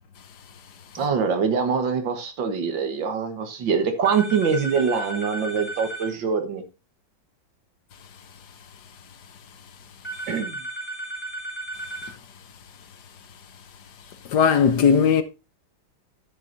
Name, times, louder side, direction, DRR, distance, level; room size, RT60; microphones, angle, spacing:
voice 1, 0.9-6.6 10.3-10.6, right 6 dB, 75° right, 2.0 m, -24 dB
sound 1, 4.0-6.1 10.0-12.1, right 1 dB, 5° left, 2.8 m, -34 dB
voice 2, 14.3-15.2, left 7 dB, 65° left, 1.3 m, -17 dB
12.0 x 7.0 x 2.6 m
omnidirectional pair, 2.1 m